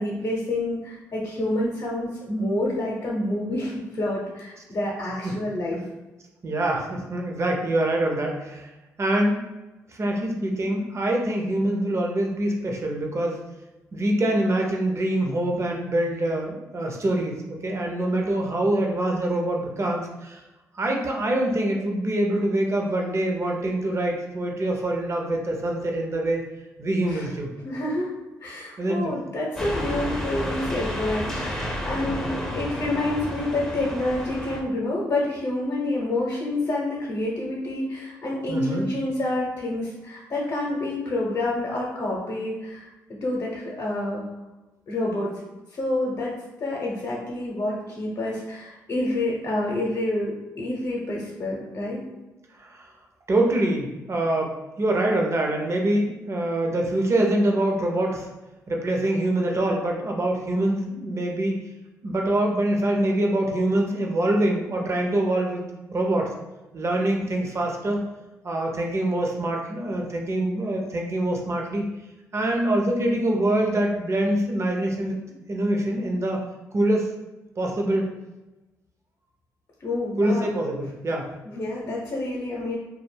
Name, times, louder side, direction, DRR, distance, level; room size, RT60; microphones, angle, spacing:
voice 1, 0.0-5.8 27.1-27.3 27.6-28.1 28.4-42.9 43.2-44.3 44.9-45.3 45.7-52.0 79.8-80.5 81.4-82.8, left 1 dB, 50° left, -4 dB, 0.7 m, -28 dB
voice 2, 6.4-8.7 9.0-9.4 9.9-13.4 13.9-20.4 20.7-26.4 26.8-27.5 28.8-29.2 38.5-38.9 52.5-52.9 53.3-58.3 58.7-61.5 62.0-65.6 65.9-66.3 66.7-68.0 68.4-71.8 72.3-75.2 75.5-76.4 76.7-77.1 77.6-78.1 80.2-81.3, right 1 dB, 40° right, 0 dB, 0.7 m, -24 dB
sound 1, 29.6-34.6, equal, 5° left, 0.6 m, -31 dB
2.2 x 2.0 x 3.3 m, 1.1 s
supercardioid pair, 50°, 7 cm